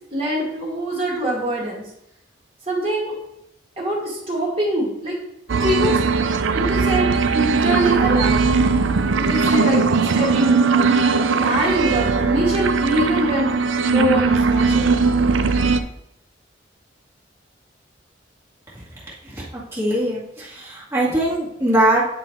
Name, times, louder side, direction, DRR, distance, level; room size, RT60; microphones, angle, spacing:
voice 1, 0.1-1.9 2.7-3.1 3.8-5.2 5.6-6.0 6.5-8.4 9.2-11.0 11.3-13.5 13.9-15.0, right 1 dB, 30° right, -4 dB, 1.9 m, -24 dB
sound 1, 5.5-15.8, right 4 dB, 80° right, 0.5 m, -19 dB
voice 2, 19.7-22.1, right 1 dB, 15° right, -8 dB, 1.9 m, -21 dB
9.0 x 4.1 x 4.6 m, 0.81 s
head